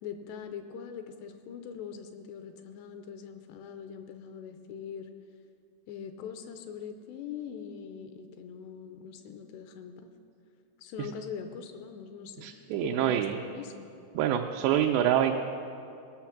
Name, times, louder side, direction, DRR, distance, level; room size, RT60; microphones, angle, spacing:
voice 1, 0.0-5.1 5.9-10.1 10.8-13.9, left 7 dB, 85° left, 7 dB, 2.7 m, -42 dB
voice 2, 12.4-13.4 14.1-15.3, right 10 dB, 80° right, 2 dB, 2.6 m, -26 dB
17.5 x 6.2 x 5.8 m, 2.6 s
omnidirectional pair, 5.1 m